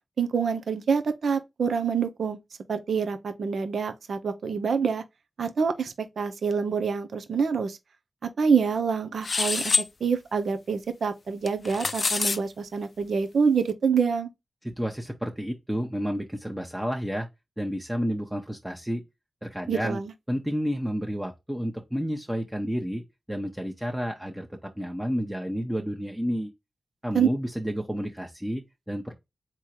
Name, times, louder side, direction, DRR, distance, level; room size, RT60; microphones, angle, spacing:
voice 1, 0.2-2.4 2.7-5.0 5.4-7.8 8.2-9.7 10.0-14.3 19.7-20.1 27.1-27.3, right 6 dB, 80° right, 0.7 m, -26 dB
sound 1, 9.2-9.9 11.5-12.4, left 4 dB, 55° left, 0.3 m, -25 dB
voice 2, 14.6-17.3 17.6-19.0 19.4-20.0 20.3-23.0 23.3-26.5 27.0-29.1, equal, 10° right, 0.9 m, -30 dB
3.7 x 3.0 x 4.5 m
cardioid pair, 65°, 0 cm